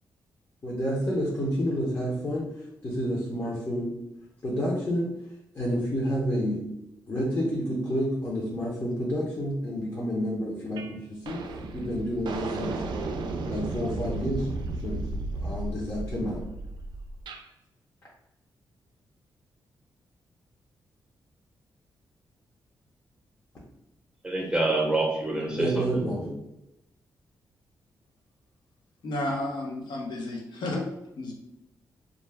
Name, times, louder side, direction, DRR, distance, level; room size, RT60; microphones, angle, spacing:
voice 1, 0.6-3.9 4.4-5.1 5.5-6.6 7.1-11.4 11.7-12.8 13.4-14.5 14.8-15.1 15.4-16.4 25.5-26.3, equal, 35° left, -5 dB, 0.7 m, -29 dB
sound 1, 10.8-10.9 11.2-17.4, right 2 dB, 75° right, 0.3 m, -34 dB
voice 2, 24.2-26.3, right 2 dB, 10° right, -2 dB, 0.7 m, -27 dB
voice 3, 29.0-30.8 31.2-31.3, left 1 dB, 75° left, -1 dB, 0.7 m, -32 dB
2.4 x 2.2 x 3.3 m, 0.87 s
cardioid pair, 85°, 8 cm